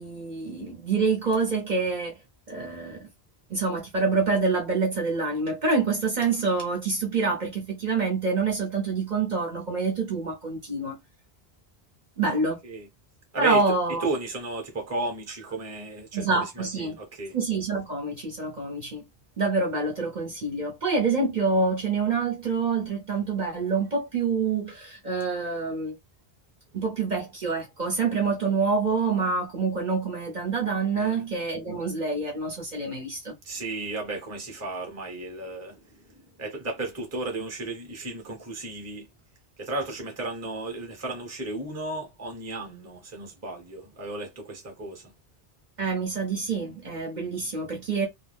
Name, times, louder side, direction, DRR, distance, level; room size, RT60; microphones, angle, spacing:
voice 1, 0.0-2.2 2.5-3.1 3.5-11.0 12.2-12.6 13.4-14.1 16.1-17.0 17.3-19.0 19.4-25.9 26.7-33.3 45.8-48.1, right 4 dB, 50° right, 0.8 m, -26 dB
voice 2, 14.0-16.3 16.8-17.4 31.0-31.2 33.4-35.7 36.4-39.1 39.6-45.0, right 2 dB, 15° right, 0.7 m, -34 dB
2.3 x 2.2 x 3.3 m
omnidirectional pair, 1.1 m